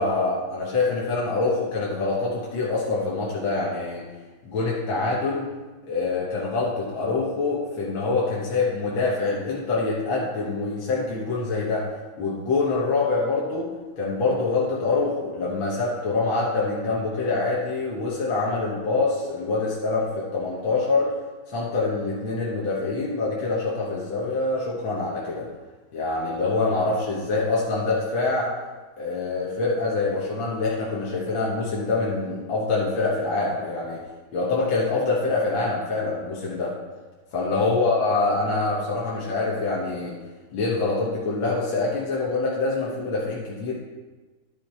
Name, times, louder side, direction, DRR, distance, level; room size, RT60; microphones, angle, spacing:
voice 1, 0.0-4.0 4.4-5.5 5.9-11.9 12.2-13.7 14.0-21.2 21.5-25.5 25.9-28.5 29.0-34.0 34.3-36.7 37.3-40.2 40.5-43.7, left 3 dB, 70° left, -5 dB, 2.1 m, -25 dB
11.0 x 4.9 x 4.4 m, 1.3 s
omnidirectional pair, 2.3 m